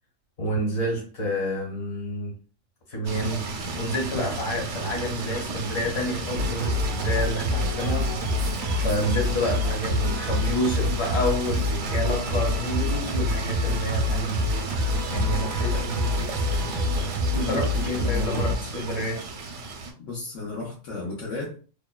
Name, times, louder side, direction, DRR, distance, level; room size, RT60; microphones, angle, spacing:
voice 1, 0.4-2.4 2.9-8.1 8.4-14.5 15.1-19.3, equal, 60° left, 1.4 m, -29 dB
sound 1, 3.0-19.9, right 3 dB, 75° right, 0.9 m, -33 dB
Singing, 6.3-18.6, left 2 dB, 55° right, 0.5 m, -27 dB
voice 2, 17.3-18.5 20.1-21.6, left 3 dB, 80° left, 1.1 m, -33 dB
2.8 x 2.2 x 2.2 m
omnidirectional pair, 1.3 m